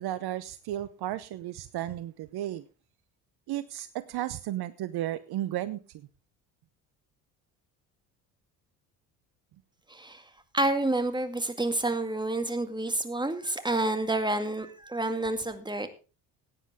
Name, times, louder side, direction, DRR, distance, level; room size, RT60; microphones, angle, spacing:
voice 1, 0.0-2.6 3.5-6.1, right 13 dB, 55° right, 15 dB, 0.8 m, -34 dB
voice 2, 9.9-15.9, right 2 dB, 10° right, 8 dB, 2.1 m, -29 dB
16.5 x 9.6 x 3.5 m, 0.33 s
hypercardioid pair, 65°, 45 cm